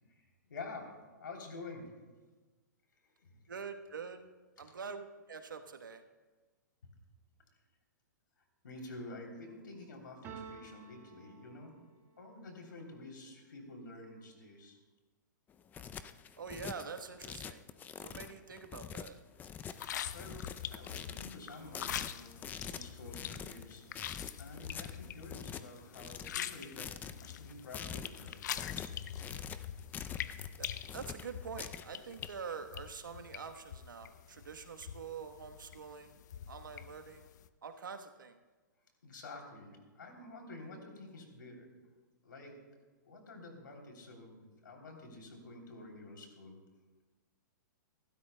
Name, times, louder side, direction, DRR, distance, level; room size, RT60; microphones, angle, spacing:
voice 1, 0.1-1.9 3.0-3.3 4.6-4.7 8.6-11.7 12.2-14.8 19.8-28.7 39.0-41.7 42.2-42.6 43.0-46.6, left 2 dB, 85° left, 1 dB, 3.1 m, -49 dB
voice 2, 3.5-4.3 4.6-6.0 16.4-17.6 18.0-19.2 30.6-30.7 30.9-36.2 36.5-37.3 37.6-38.4, right 5 dB, 90° right, 6 dB, 1.1 m, -45 dB
sound 1, 10.2-12.2, right 6 dB, 20° right, 1.5 m, -51 dB
sound 2, 15.5-32.3, left 8 dB, 15° left, 0.4 m, -45 dB
sound 3, 19.7-37.5, left 10 dB, 65° left, 0.6 m, -45 dB
25.0 x 12.5 x 2.2 m, 1.3 s
hypercardioid pair, 130°, 10 cm